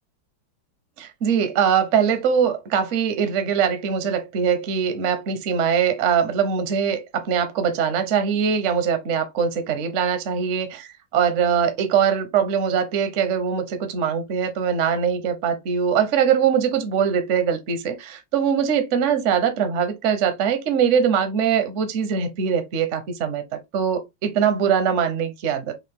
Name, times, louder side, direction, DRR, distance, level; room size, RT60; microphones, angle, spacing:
voice 1, 1.0-25.7, right 7 dB, 60° right, 0.7 m, -22 dB
6.2 x 2.1 x 3.5 m
omnidirectional pair, 2.3 m